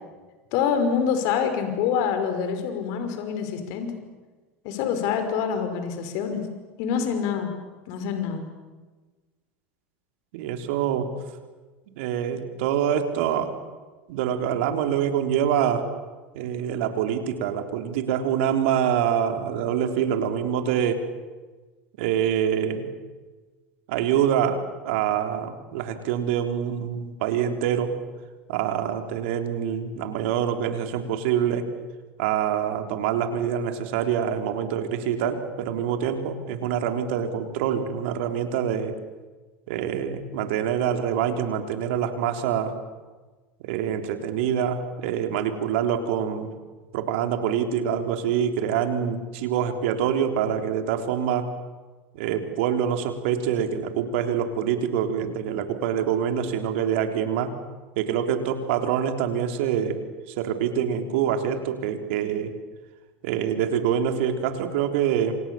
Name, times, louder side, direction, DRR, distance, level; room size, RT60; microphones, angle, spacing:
voice 1, 0.5-3.9 4.6-6.4 6.8-7.5 7.9-8.5, left 7 dB, 60° left, 7 dB, 5.4 m, -26 dB
voice 2, 10.3-11.1 12.0-13.5 14.1-15.9 16.3-21.1 22.0-22.9 23.9-27.9 28.5-31.7 32.2-38.9 39.7-42.7 43.6-46.5 46.9-51.5 52.1-57.6 58.0-60.0 60.4-62.5 63.2-65.4, right 9 dB, 70° right, 6 dB, 3.6 m, -25 dB
28.5 x 26.5 x 7.2 m, 1.3 s
hypercardioid pair, 85°, 7 cm